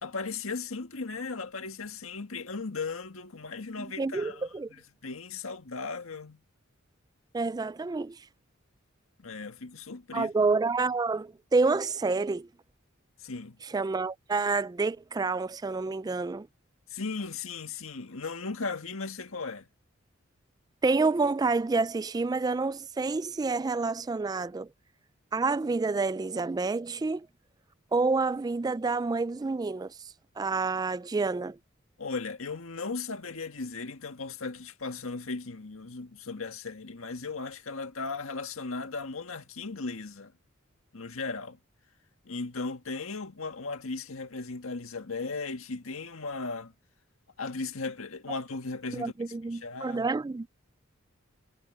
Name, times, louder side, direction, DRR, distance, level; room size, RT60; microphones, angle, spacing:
voice 1, 0.0-6.4 9.2-10.3 13.2-13.6 16.9-19.7 32.0-40.3 40.9-41.6 42.2-46.7 47.4-49.1 49.5-50.1, left 4 dB, 85° left, 1.7 m, -37 dB
voice 2, 3.8-4.7 7.3-8.2 10.1-12.5 13.6-16.5 20.8-24.7 25.3-27.3 27.9-29.9 30.4-31.6 48.9-50.5, right 3 dB, 20° right, 0.3 m, -28 dB
head